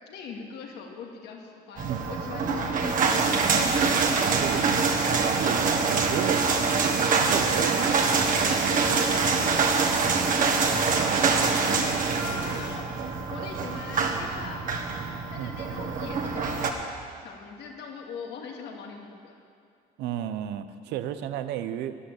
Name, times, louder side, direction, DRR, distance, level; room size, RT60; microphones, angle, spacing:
voice 1, 0.0-3.4 5.4-5.8 7.4-12.9 13.3-14.6 15.3-16.7 17.2-19.3, left 5 dB, 80° left, 1 dB, 2.4 m, -41 dB
sound 1, 1.8-16.7, right 4 dB, 50° right, 1.8 m, -25 dB
voice 2, 4.2-8.1 15.4-15.5 20.0-22.0, right 10 dB, 85° right, 11 dB, 0.8 m, -33 dB
12.5 x 11.5 x 8.4 m, 2.4 s
cardioid pair, 110°, 17 cm